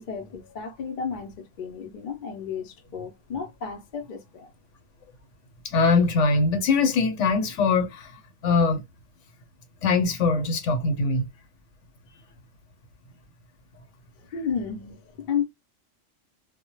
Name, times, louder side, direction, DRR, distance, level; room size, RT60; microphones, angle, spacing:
voice 1, 0.0-4.5 14.3-15.4, left 7 dB, 55° left, 0.6 m, -32 dB
voice 2, 5.6-8.1 8.4-8.8 9.8-11.2, left 4 dB, 75° left, 1.0 m, -22 dB
2.1 x 2.0 x 2.9 m
omnidirectional pair, 1.3 m